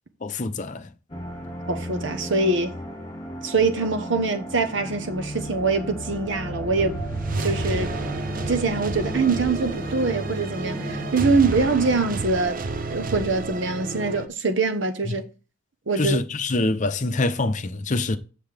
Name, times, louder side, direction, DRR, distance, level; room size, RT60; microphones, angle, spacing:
voice 1, 0.2-0.9 15.1-15.2 16.0-18.2, left 2 dB, 40° left, 0.7 m, -25 dB
sound 1, 1.1-13.0, equal, 20° left, 2.1 m, -35 dB
voice 2, 1.7-2.7 3.4-7.0 7.4-7.9 8.5-12.6 12.9-15.2 15.9-16.2, right 3 dB, 65° right, 1.0 m, -24 dB
sound 2, 5.2-14.3, right 3 dB, 45° right, 0.6 m, -31 dB
7.7 x 6.7 x 3.4 m
head